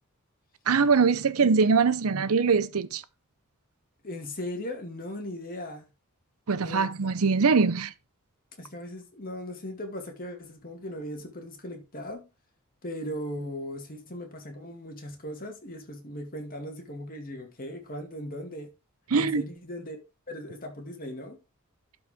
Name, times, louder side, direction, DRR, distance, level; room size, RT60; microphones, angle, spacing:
voice 1, 0.7-3.0 6.5-7.9 19.1-19.4, right 5 dB, 75° right, 0.7 m, -22 dB
voice 2, 4.0-5.9 6.6-6.9 8.6-12.3 12.8-18.7 19.1-21.4, equal, 40° left, 2.2 m, -38 dB
12.0 x 4.8 x 3.6 m
head